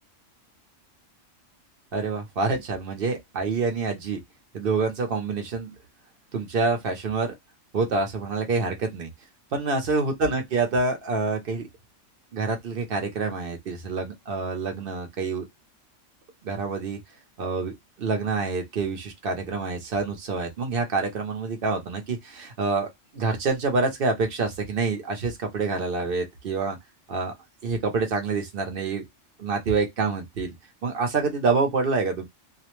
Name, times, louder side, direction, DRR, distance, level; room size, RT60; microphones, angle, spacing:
voice 1, 1.9-4.2 4.5-5.7 6.3-7.3 7.7-9.1 9.5-11.7 12.3-15.5 16.4-17.0 17.4-22.9 23.1-26.8 27.1-27.3 27.6-29.0 29.4-30.5 30.8-32.3, right 4 dB, 55° right, 0.8 m, -27 dB
2.4 x 2.0 x 2.9 m
omnidirectional pair, 1.3 m